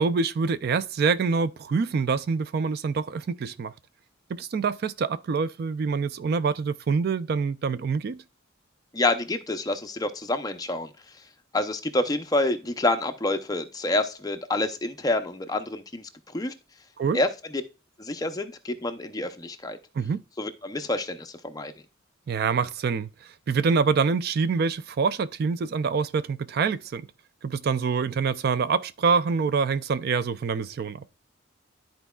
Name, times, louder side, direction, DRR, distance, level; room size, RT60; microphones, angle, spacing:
voice 1, 0.0-3.7 4.3-8.2 17.0-17.2 19.9-20.2 22.3-27.1 27.4-31.0, right 5 dB, 50° right, 0.3 m, -26 dB
voice 2, 8.9-10.9 11.5-16.1 16.3-16.5 17.1-17.6 18.0-19.8 20.4-21.7, left 2 dB, 20° left, 0.6 m, -27 dB
12.5 x 4.5 x 2.3 m
head